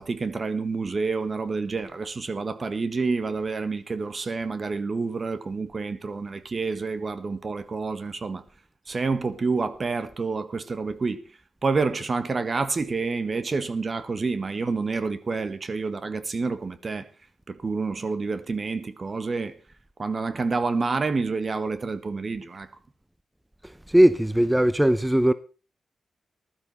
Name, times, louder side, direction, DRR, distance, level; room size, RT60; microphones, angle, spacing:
voice 1, 0.0-8.4 8.9-11.2 11.6-17.1 17.5-19.6 20.0-22.7, right 4 dB, 45° right, 1.5 m, -28 dB
voice 2, 23.9-25.3, right 1 dB, 10° right, 0.7 m, -19 dB
15.0 x 12.5 x 4.3 m
cardioid pair, 60°, 0 cm